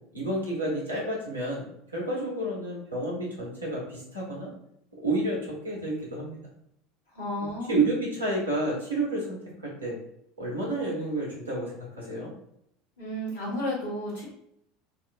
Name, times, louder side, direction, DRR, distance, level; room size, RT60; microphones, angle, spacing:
voice 1, 0.1-4.5 5.0-6.4 7.4-10.0 10.4-12.3, right 2 dB, 85° right, -4 dB, 1.1 m, -30 dB
voice 2, 7.1-7.8 13.0-14.2, left 1 dB, 70° left, -7 dB, 1.4 m, -32 dB
4.1 x 2.2 x 2.5 m, 0.75 s
figure-of-eight pair, 70°, 0 cm